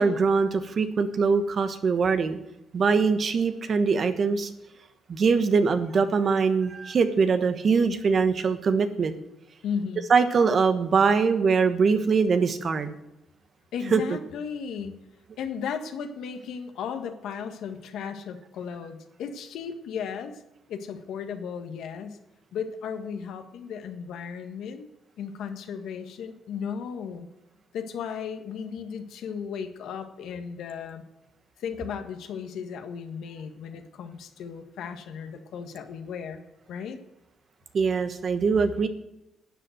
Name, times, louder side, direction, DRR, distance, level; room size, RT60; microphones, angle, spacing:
voice 1, 0.0-2.4 2.7-4.5 5.1-9.1 10.1-12.9 13.9-14.0 37.7-38.9, right 5 dB, 50° right, 9 dB, 1.2 m, -22 dB
voice 2, 9.6-10.0 13.7-15.0 15.4-20.4 20.7-22.2 22.5-24.9 25.2-27.3 27.7-31.0 31.6-37.0, left 7 dB, 80° left, 6 dB, 1.5 m, -35 dB
12.0 x 7.9 x 7.8 m, 0.89 s
cardioid pair, 90°, 0 cm